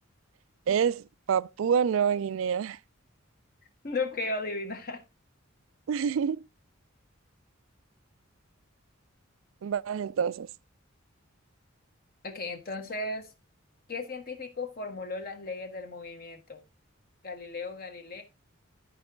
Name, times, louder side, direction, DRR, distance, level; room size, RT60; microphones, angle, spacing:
voice 1, 0.7-2.8 5.9-6.5 9.6-10.5, right 7 dB, 70° right, 0.3 m, -27 dB
voice 2, 3.8-5.0 12.2-13.3 13.9-16.6 17.2-18.2, left 3 dB, 45° left, 1.3 m, -35 dB
12.0 x 4.8 x 3.7 m
head